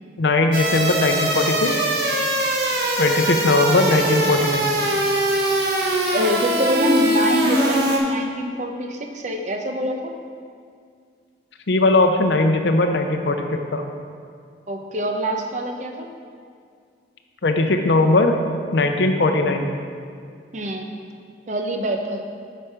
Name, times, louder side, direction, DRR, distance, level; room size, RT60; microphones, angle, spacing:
voice 1, 0.2-1.9 3.0-4.7 11.7-13.8 17.4-18.3 18.7-19.7, left 2 dB, 70° left, 4 dB, 0.6 m, -19 dB
sound 1, 0.5-8.0, right 1 dB, 60° right, 1.1 m, -22 dB
voice 2, 6.1-10.1 14.7-16.1 20.5-20.9 21.5-22.2, equal, 40° right, 3 dB, 0.7 m, -24 dB
8.0 x 6.2 x 4.4 m, 2.2 s
head